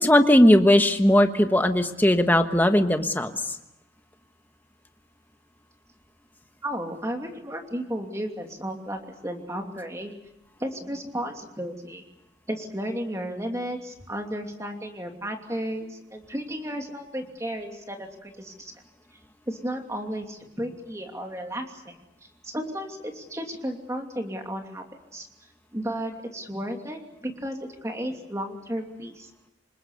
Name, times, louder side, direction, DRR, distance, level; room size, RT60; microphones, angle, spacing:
voice 1, 0.0-3.3, left 1 dB, 10° left, 7 dB, 1.3 m, -18 dB
voice 2, 6.6-10.1 10.6-12.0 12.5-18.7 19.5-21.9 22.4-24.8 25.1-25.3 25.7-29.3, equal, 15° right, 3 dB, 2.8 m, -33 dB
26.5 x 20.5 x 8.2 m, 0.89 s
head